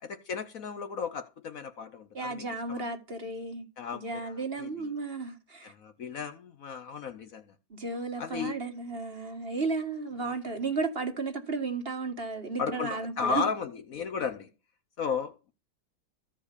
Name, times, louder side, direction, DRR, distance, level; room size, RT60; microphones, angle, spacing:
voice 1, 0.0-2.8 3.8-4.9 5.6-7.5 8.2-8.6 12.6-14.5 15.0-15.5, left 6 dB, 60° left, 1.1 m, -35 dB
voice 2, 2.1-3.7 3.9-5.7 7.7-13.4, right 3 dB, 35° right, 1.8 m, -34 dB
14.5 x 5.2 x 8.3 m
omnidirectional pair, 1.9 m